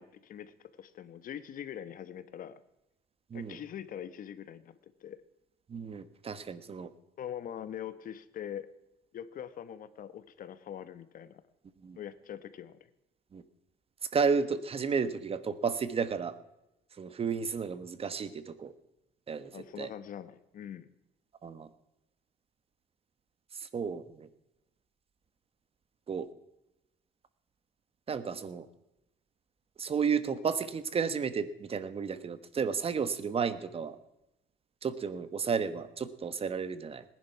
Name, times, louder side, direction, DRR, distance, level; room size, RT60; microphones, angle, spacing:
voice 1, 0.0-2.6 3.3-4.7 5.0-5.2 7.2-8.7 9.1-11.4 12.0-12.8 19.5-20.9, left 9 dB, 55° left, 14 dB, 1.3 m, -43 dB
voice 2, 5.7-6.9 11.8-12.0 13.3-13.4 14.1-16.3 17.0-18.7 19.3-19.9 21.4-21.7 23.6-24.3 26.1-26.3 28.1-28.7 29.8-34.0 34.8-37.0, right 6 dB, 35° right, 13 dB, 1.3 m, -32 dB
19.0 x 11.0 x 5.9 m, 0.91 s
cardioid pair, 110°, 17 cm